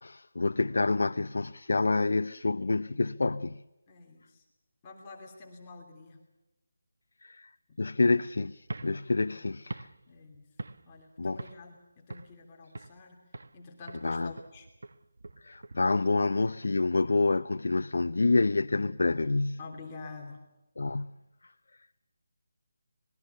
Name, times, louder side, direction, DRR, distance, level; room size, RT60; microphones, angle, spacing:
voice 1, 0.0-3.6 7.2-7.5 7.8-9.9 11.2-11.4 14.0-14.3 15.4-19.6 20.8-21.2, left 3 dB, 75° left, 0.7 m, -28 dB
voice 2, 3.9-4.4 4.8-6.2 7.7-7.8 9.2-9.6 10.1-10.5 10.9-13.2 13.5-14.7 19.6-20.4, left 3 dB, 20° left, 3.0 m, -48 dB
sound 1, 8.6-11.1 11.4-11.7 12.1-13.0 13.3-13.6 13.9-17.0, right 2 dB, 70° right, 1.2 m, -44 dB
25.5 x 21.0 x 6.9 m
figure-of-eight pair, 175°, 0 cm